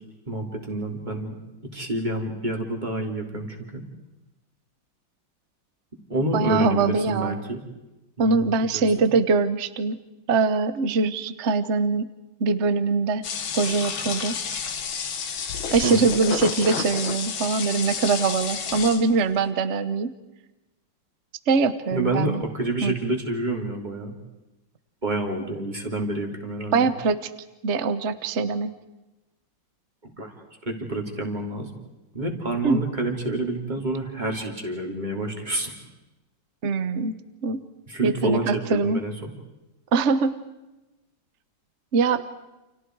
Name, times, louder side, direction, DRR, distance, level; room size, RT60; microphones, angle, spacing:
voice 1, 0.3-1.4 1.7-3.8 6.1-7.6 8.2-9.1 15.8-16.0 21.9-24.1 25.0-26.9 30.0-30.3 30.7-31.8 32.1-35.7 37.9-39.3, right 2 dB, 20° right, 2 dB, 3.6 m, -28 dB
voice 2, 6.3-7.4 8.2-10.0 10.3-12.1 12.4-13.2 13.5-14.6 15.7-20.1 21.5-22.4 22.8-22.9 26.7-27.3 27.6-28.7 32.6-32.8 36.6-37.1 37.4-37.6 38.0-39.0 39.9-40.4 41.9-42.2, right 4 dB, 40° right, 12 dB, 1.2 m, -23 dB
sound 1, 13.2-19.4, left 7 dB, 80° left, 2.1 m, -30 dB
29.5 x 29.0 x 4.8 m, 1.0 s
omnidirectional pair, 2.2 m